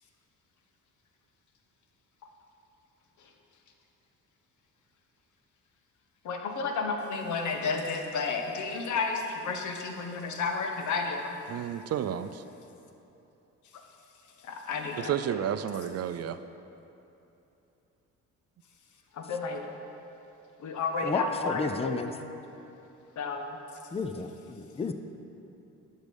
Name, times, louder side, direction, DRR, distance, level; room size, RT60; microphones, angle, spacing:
voice 1, 6.2-11.4 13.7-13.8 14.4-15.4 19.1-19.6 20.6-21.9 23.2-23.6 24.8-24.9, left 4 dB, 75° left, 3 dB, 1.2 m, -32 dB
voice 2, 11.5-12.4 15.0-16.4, right 9 dB, 55° right, 11 dB, 0.5 m, -31 dB
voice 3, 21.0-22.1 23.9-24.9, left 4 dB, 20° left, 8 dB, 0.5 m, -32 dB
11.5 x 6.4 x 5.3 m, 2.9 s
cardioid pair, 90°, 30 cm